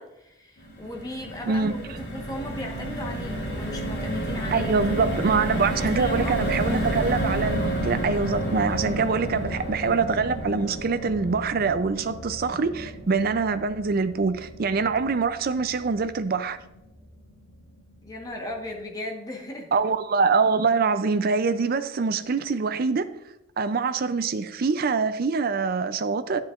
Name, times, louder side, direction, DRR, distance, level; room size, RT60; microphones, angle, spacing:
voice 1, 0.0-4.7 5.0-5.4 5.9-6.9 18.0-19.7, left 1 dB, 20° left, 1.2 m, -37 dB
sound 1, 0.6-16.9 17.3-17.4 17.7-17.9, right 1 dB, 55° left, 2.3 m, -31 dB
voice 2, 1.5-1.8 4.5-16.6 19.7-23.1 23.6-26.4, right 4 dB, 50° right, 0.4 m, -24 dB
11.5 x 7.4 x 2.5 m
head